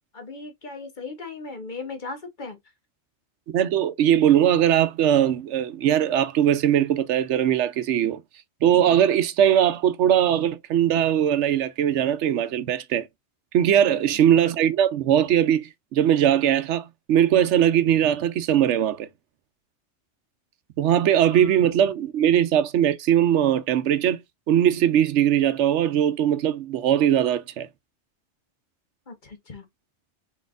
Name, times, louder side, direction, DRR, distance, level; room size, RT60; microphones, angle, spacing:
voice 1, 0.1-2.6 13.8-14.2 21.2-21.6 29.1-29.7, left 3 dB, 45° left, 1.2 m, -38 dB
voice 2, 3.5-8.2 8.6-13.1 13.5-19.1 20.8-24.2 24.5-27.7, right 10 dB, 90° right, 1.0 m, -20 dB
4.1 x 4.1 x 2.4 m
omnidirectional pair, 1.2 m